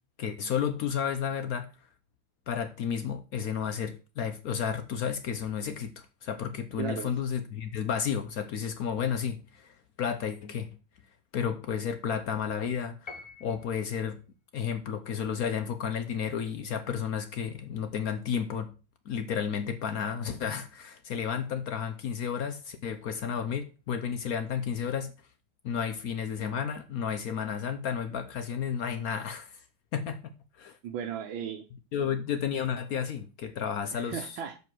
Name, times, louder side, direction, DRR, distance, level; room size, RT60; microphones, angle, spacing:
voice 1, 0.2-1.7 2.5-10.7 11.3-14.2 14.5-18.7 19.1-25.1 25.6-29.6 29.9-30.2 30.6-30.8 31.9-34.4, left 7 dB, 65° left, 1.0 m, -32 dB
voice 2, 6.8-7.1 30.8-31.7 33.9-34.7, right 8 dB, 80° right, 1.6 m, -36 dB
Piano, 13.1-14.0, left 4 dB, 30° left, 0.5 m, -46 dB
7.1 x 5.4 x 6.0 m
omnidirectional pair, 2.1 m